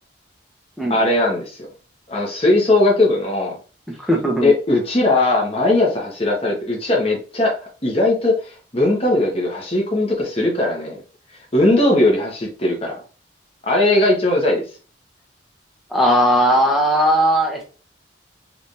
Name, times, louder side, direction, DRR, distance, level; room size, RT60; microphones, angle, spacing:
voice 1, 0.9-1.5 2.1-3.5 4.4-7.5 7.8-8.3 8.7-11.0 11.5-13.0 13.6-14.6, left 2 dB, 30° left, -1 dB, 1.2 m, -18 dB
voice 2, 4.0-4.5 15.9-17.6, equal, ahead, -1 dB, 0.7 m, -17 dB
3.3 x 3.3 x 2.7 m, 0.35 s
head